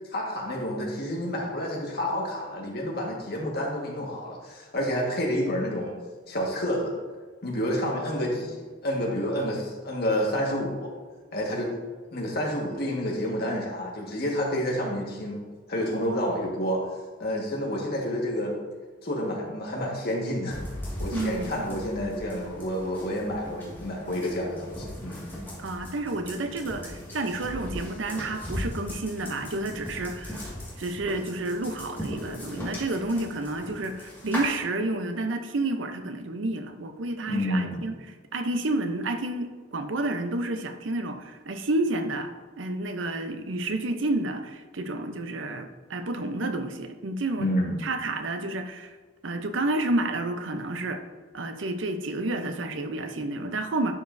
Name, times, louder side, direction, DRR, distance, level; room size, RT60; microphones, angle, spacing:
voice 1, 0.1-5.9 6.3-6.9 7.4-10.9 11.3-11.7 12.1-16.8 17.2-18.6 19.0-20.6 21.0-25.3 37.3-37.8 47.4-47.9, equal, 55° left, -1 dB, 1.6 m, -29 dB
sound 1, 20.5-34.5, left 1 dB, 10° left, 1.9 m, -38 dB
voice 2, 21.1-21.6 25.6-30.5 30.8-38.0 38.3-42.3 42.6-47.5 47.8-49.0 49.2-51.0 51.3-53.9, right 2 dB, 85° right, 7 dB, 0.7 m, -30 dB
11.0 x 5.2 x 2.6 m, 1.4 s
head